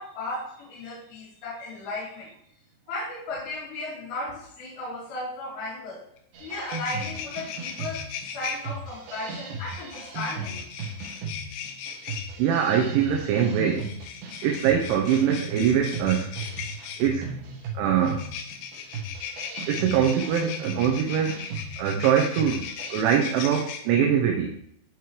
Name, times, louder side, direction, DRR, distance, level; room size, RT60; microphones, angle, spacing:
voice 1, 0.0-2.3 2.9-6.1 6.4-10.6, left 2 dB, 60° left, -9 dB, 4.9 m, -35 dB
sound 1, 6.2-6.3 6.5-8.6 9.6-12.3 13.7-17.1 18.0-23.8, left 8 dB, 80° left, 3.3 m, -37 dB
sound 2, 6.3-22.9, right 3 dB, 60° right, 2.8 m, -37 dB
voice 2, 12.4-13.9 14.4-16.3 17.0-17.3 17.7-18.3 19.7-21.4 21.8-24.5, right 8 dB, 80° right, 2 dB, 3.1 m, -23 dB
15.5 x 5.3 x 3.2 m, 0.70 s
omnidirectional pair, 5.6 m